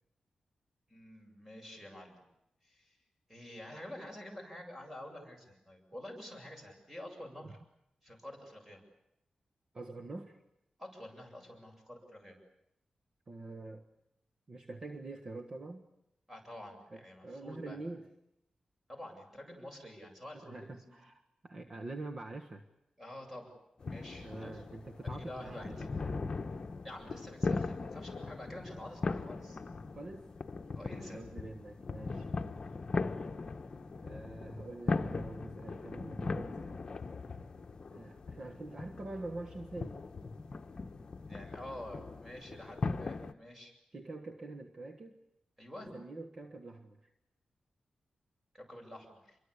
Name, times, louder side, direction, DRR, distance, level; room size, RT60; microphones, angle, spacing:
voice 1, 0.9-2.2 2.6-3.0 3.3-7.6 8.0-8.8 10.8-12.4 16.3-17.8 18.9-20.9 23.0-23.5 23.9-24.6 25.0-25.9 26.8-29.6 30.8-31.2 41.3-43.8 45.6-45.9 48.5-49.4, left 1 dB, 10° right, 7.7 m, -48 dB
voice 2, 9.7-10.4 13.3-13.9 14.5-15.9 16.9-18.1 20.4-22.7 24.2-26.2 27.8-27.9 29.9-30.3 30.8-32.3 34.0-36.8 37.9-40.0 43.9-45.2 45.9-47.1, right 2 dB, 40° right, 1.5 m, -45 dB
sound 1, 23.8-43.3, left 3 dB, 40° left, 1.1 m, -39 dB
27.5 x 23.0 x 8.4 m
wide cardioid pair, 135°, 2 cm